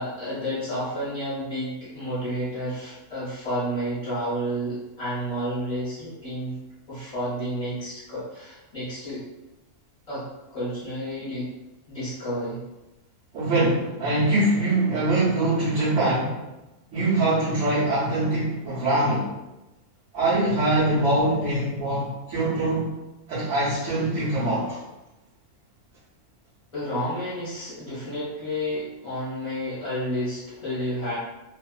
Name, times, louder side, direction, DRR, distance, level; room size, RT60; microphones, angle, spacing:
voice 1, 0.0-6.6 6.9-9.2 10.1-10.3 10.5-11.5 11.9-12.6 26.7-31.1, equal, 30° left, -11 dB, 0.8 m, -30 dB
voice 2, 13.3-16.4 16.9-19.3 20.1-22.9 23.3-24.8, right 2 dB, 70° right, -10 dB, 1.0 m, -23 dB
2.4 x 2.4 x 2.2 m, 1.0 s
omnidirectional pair, 1.3 m